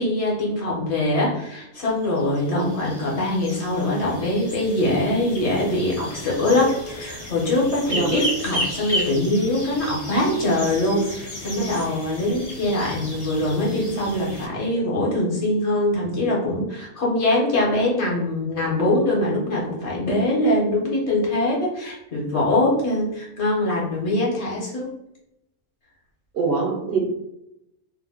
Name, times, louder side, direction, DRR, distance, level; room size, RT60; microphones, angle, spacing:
voice 1, 0.0-24.9, left 1 dB, 60° left, -3 dB, 1.2 m, -23 dB
sound 1, 1.7-14.5, equal, 35° left, 0.7 m, -34 dB
voice 2, 26.3-27.0, right 4 dB, 60° right, 0 dB, 0.7 m, -24 dB
2.6 x 2.1 x 3.4 m, 0.82 s
omnidirectional pair, 1.3 m